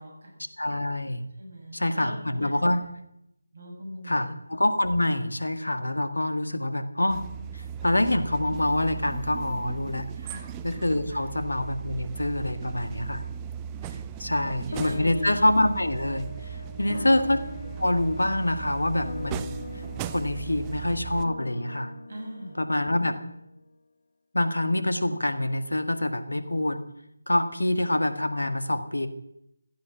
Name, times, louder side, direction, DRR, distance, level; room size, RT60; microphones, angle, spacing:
voice 1, 0.0-0.5 1.4-2.5 3.5-4.3 10.1-10.5 11.1-11.2 14.2-15.3 16.9-17.1 22.1-22.6, equal, 50° right, 0 dB, 7.3 m, -41 dB
voice 2, 0.6-1.3 1.7-2.8 4.1-7.2 7.5-10.1 10.6-13.2 14.2-17.4 17.8-19.6 20.1-21.9 22.6-23.2 24.3-26.8 27.3-29.1, left 1 dB, 75° left, 10 dB, 1.9 m, -26 dB
sound 1, 7.1-21.2, right 8 dB, 15° right, 0.6 m, -38 dB
sound 2, 14.7-23.4, left 3 dB, 55° left, 0.9 m, -40 dB
15.5 x 14.0 x 6.2 m, 0.79 s
figure-of-eight pair, 160°, 0 cm